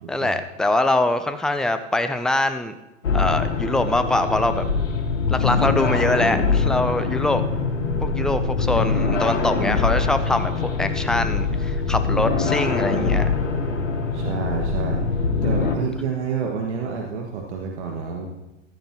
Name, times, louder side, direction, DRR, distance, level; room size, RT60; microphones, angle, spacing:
voice 1, 0.1-2.7 3.1-4.6 5.3-7.4 8.0-13.3, left 2 dB, ahead, 10 dB, 0.4 m, -23 dB
sound 1, 3.0-15.7, left 4 dB, 70° left, 2.5 m, -23 dB
voice 2, 14.1-15.0 15.4-18.3, right 6 dB, 65° right, 0 dB, 1.9 m, -29 dB
15.5 x 12.5 x 3.0 m, 0.98 s
figure-of-eight pair, 100°, 37 cm